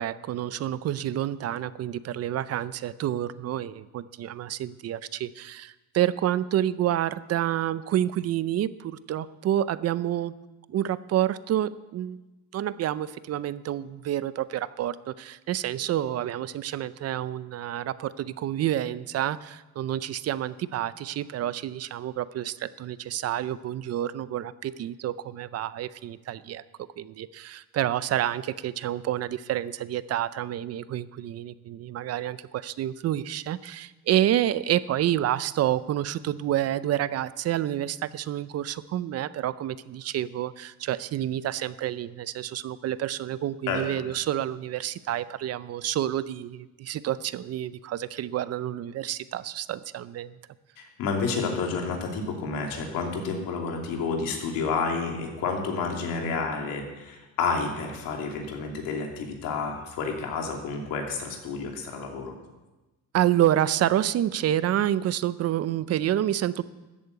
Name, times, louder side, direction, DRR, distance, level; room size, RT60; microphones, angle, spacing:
voice 1, 0.0-10.3 10.7-12.2 12.5-26.6 27.0-50.4 63.1-66.6, right 12 dB, 50° right, 16 dB, 0.5 m, -28 dB
voice 2, 50.8-62.3, left 4 dB, 80° left, 2 dB, 2.9 m, -30 dB
13.5 x 8.6 x 8.1 m, 1.1 s
cardioid pair, 140°, 33 cm